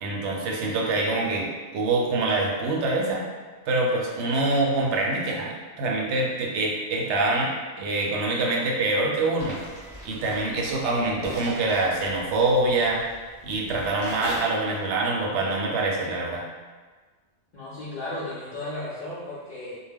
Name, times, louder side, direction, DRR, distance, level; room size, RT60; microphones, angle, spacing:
voice 1, 0.0-3.2 3.7-7.5 7.8-9.6 10.0-13.0 13.4-16.4, right 2 dB, 70° right, -2 dB, 0.8 m, -25 dB
sound 1, 9.4-14.4, equal, 5° right, 0.7 m, -40 dB
voice 2, 17.5-19.8, left 1 dB, 65° left, -8 dB, 0.4 m, -34 dB
2.2 x 2.1 x 3.4 m, 1.4 s
omnidirectional pair, 1.3 m